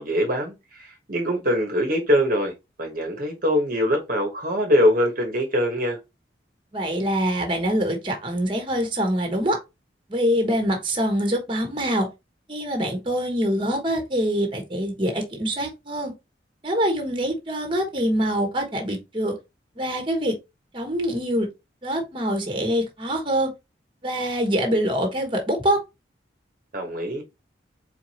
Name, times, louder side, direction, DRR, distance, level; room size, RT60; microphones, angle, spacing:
voice 1, 0.0-2.5 2.8-6.0 26.7-27.2, equal, 50° right, 1.2 m, -23 dB
voice 2, 6.7-9.6 10.1-12.1 12.5-16.1 16.6-19.3 19.8-20.3 20.7-21.5 21.8-23.5 24.0-25.8, equal, 30° right, 1.3 m, -24 dB
4.6 x 4.0 x 2.8 m
head